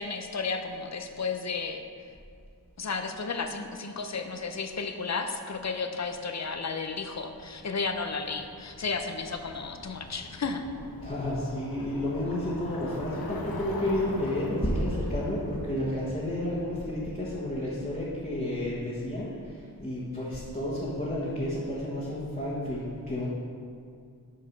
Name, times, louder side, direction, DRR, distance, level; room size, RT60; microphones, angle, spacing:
voice 1, 0.0-1.8 2.8-10.6, left 4 dB, 50° left, 6 dB, 0.7 m, -33 dB
Bicycle, 7.0-17.9, left 2 dB, 75° left, 1.0 m, -43 dB
voice 2, 11.0-23.3, left 1 dB, 25° left, -9 dB, 1.5 m, -31 dB
7.0 x 4.7 x 6.0 m, 2.3 s
wide cardioid pair, 60°, 36 cm